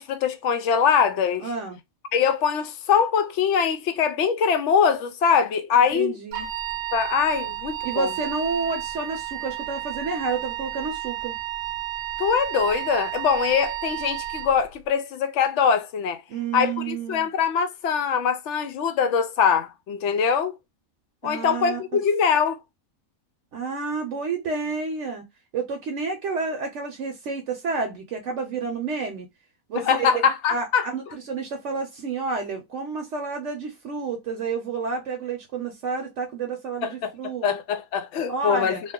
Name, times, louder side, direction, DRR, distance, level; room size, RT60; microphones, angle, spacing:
voice 1, 0.0-1.5 2.1-6.2 6.9-8.1 12.2-16.2 16.5-20.6 21.2-22.6 29.7-30.9 36.8-38.8, left 7 dB, 65° left, 0.8 m, -23 dB
voice 2, 1.4-1.8 5.9-6.5 7.8-11.4 16.3-17.3 21.2-22.0 23.5-25.2 25.5-29.3 29.7-30.2 30.5-37.5 38.3-38.8, right 4 dB, 65° right, 0.9 m, -30 dB
Wind instrument woodwind instrument, 6.3-14.5, right 13 dB, 85° right, 1.1 m, -32 dB
2.5 x 2.3 x 3.5 m
omnidirectional pair, 1.4 m